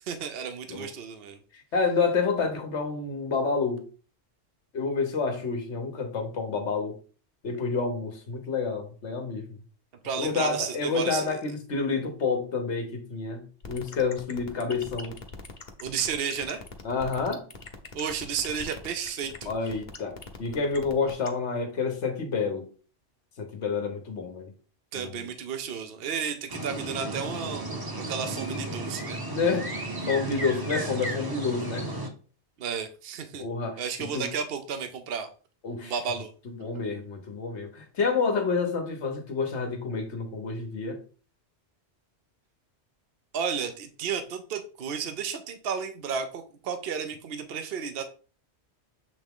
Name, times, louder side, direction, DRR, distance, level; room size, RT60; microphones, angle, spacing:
voice 1, 0.1-1.4 10.0-11.4 15.8-16.6 17.9-19.5 24.9-29.2 32.6-33.4 33.8-35.3 35.8-36.3 43.3-48.0, right 6 dB, 60° right, 8 dB, 0.9 m, -32 dB
voice 2, 1.7-3.8 4.7-7.0 7.4-9.5 10.2-15.2 16.8-17.4 19.5-22.7 23.4-24.5 24.9-25.3 29.3-29.7 30.1-31.9 33.4-34.3 35.6-35.9 36.5-41.0, left 4 dB, 80° left, 5 dB, 1.4 m, -29 dB
sound 1, 13.6-21.3, left 4 dB, 45° left, 1.0 m, -41 dB
sound 2, 26.5-32.1, right 2 dB, 20° right, 0.9 m, -34 dB
7.4 x 3.5 x 3.6 m, 0.39 s
omnidirectional pair, 1.1 m